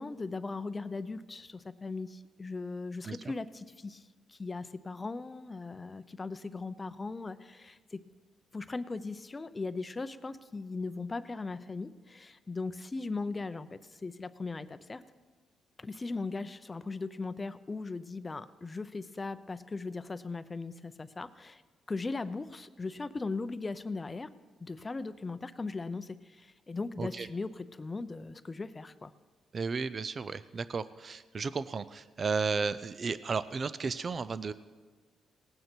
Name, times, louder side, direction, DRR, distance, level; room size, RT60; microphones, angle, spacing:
voice 1, 0.0-8.0 8.5-15.0 15.8-21.6 21.9-24.3 24.6-29.1, left 3 dB, 25° left, 13 dB, 0.6 m, -38 dB
voice 2, 29.5-34.5, right 4 dB, 45° right, 15 dB, 0.4 m, -33 dB
18.5 x 9.3 x 4.5 m, 1.4 s
cardioid pair, 85°, 0 cm